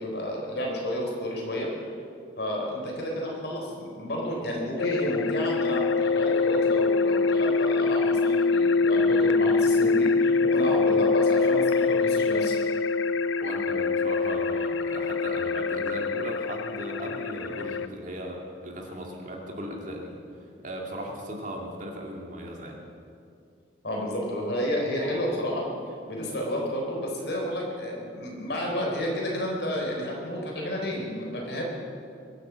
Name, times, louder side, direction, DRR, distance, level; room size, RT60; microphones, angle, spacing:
voice 1, 0.0-1.7 2.4-12.5 23.8-31.6, equal, 60° left, -2 dB, 4.2 m, -31 dB
sound 1, 4.8-17.9, left 4 dB, 80° left, 0.6 m, -24 dB
voice 2, 13.4-22.8, equal, 40° right, 0 dB, 2.3 m, -37 dB
22.5 x 8.3 x 7.5 m, 2.4 s
head